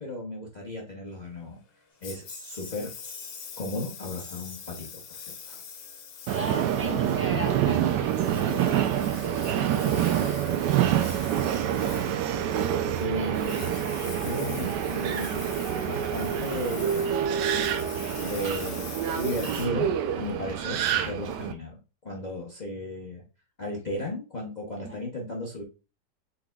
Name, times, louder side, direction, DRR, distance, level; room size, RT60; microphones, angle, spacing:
voice 1, 0.0-1.6 2.0-2.9 3.6-5.6 13.0-13.6 14.2-17.3 18.2-19.9 20.1-23.2 23.6-25.6, left 1 dB, 50° left, -2 dB, 0.5 m, -35 dB
sound 1, 1.9-2.0 2.3-2.8 3.0-3.5 4.2-4.6, equal, 15° left, 1.5 m, -47 dB
Engine, 2.0-20.5, left 7 dB, 90° left, 1.5 m, -44 dB
voice 2, 6.3-10.1 13.1-13.4 14.0-14.3 24.8-25.0, left 1 dB, 15° right, 1 dB, 0.4 m, -38 dB
Subway metro underground, 6.3-21.5, right 10 dB, 75° right, 1.2 m, -27 dB
4.6 x 3.9 x 2.3 m, 0.32 s
omnidirectional pair, 1.9 m